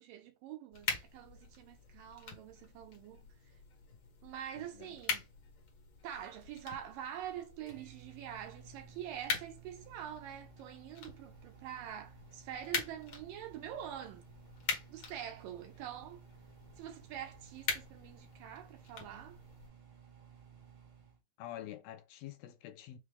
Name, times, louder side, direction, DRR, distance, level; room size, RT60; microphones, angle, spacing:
voice 1, 0.0-3.2 4.2-5.3 6.0-14.2 14.9-16.2 16.8-19.4, right 10 dB, 80° right, 2.2 m, -45 dB
sound 1, 0.7-19.7, left 5 dB, 55° left, 1.6 m, -44 dB
voice 2, 4.6-4.9 21.4-23.0, left 12 dB, 80° left, 2.4 m, -47 dB
Microwave oven, 6.1-21.2, right 7 dB, 60° right, 1.4 m, -58 dB
6.0 x 2.3 x 3.3 m
omnidirectional pair, 4.3 m